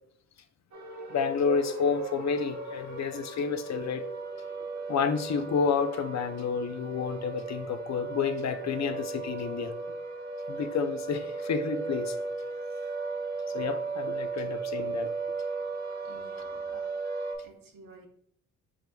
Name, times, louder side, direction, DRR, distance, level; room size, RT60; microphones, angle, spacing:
sound 1, 0.7-17.4, right 4 dB, 55° right, 1.2 m, -36 dB
voice 1, 1.1-4.1 4.9-9.7 10.5-12.2 13.5-15.1, left 6 dB, 55° left, 9 dB, 0.5 m, -30 dB
voice 2, 16.0-16.9 17.4-18.1, right 3 dB, 75° right, 3 dB, 1.0 m, -53 dB
5.0 x 4.5 x 2.3 m, 0.69 s
cardioid pair, 80°, 34 cm